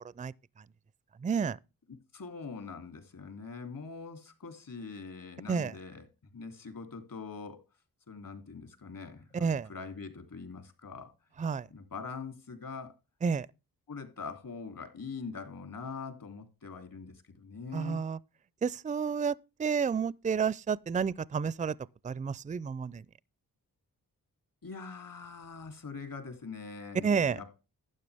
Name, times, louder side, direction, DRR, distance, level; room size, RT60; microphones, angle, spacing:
voice 1, 0.2-0.6 1.2-1.6 5.5-5.7 9.3-9.7 11.4-11.7 13.2-13.5 17.7-18.2 18.6-21.8 22.0-23.0 27.0-27.4, right 6 dB, 20° right, 0.4 m, -30 dB
voice 2, 2.1-6.0 6.3-7.6 8.1-11.1 11.7-12.9 13.9-18.0 24.6-27.7, left 4 dB, 60° left, 2.9 m, -43 dB
12.0 x 9.0 x 3.4 m
cardioid pair, 70°, 37 cm